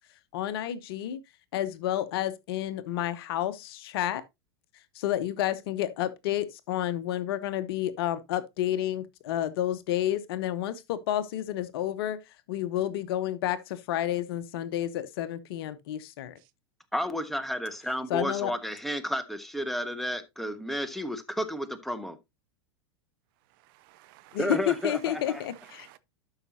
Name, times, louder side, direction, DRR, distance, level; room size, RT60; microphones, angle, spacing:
voice 1, 0.3-1.2 1.5-4.2 4.9-12.2 12.5-16.3 18.1-18.5 24.3-25.9, left 12 dB, 55° left, 0.9 m, -30 dB
voice 2, 16.9-22.2 24.4-25.4, equal, ahead, 1.2 m, -32 dB
voice 3, 23.5-24.5 24.9-26.0, right 16 dB, 50° right, 0.7 m, -54 dB
12.0 x 5.8 x 2.7 m
figure-of-eight pair, 90°, 14 cm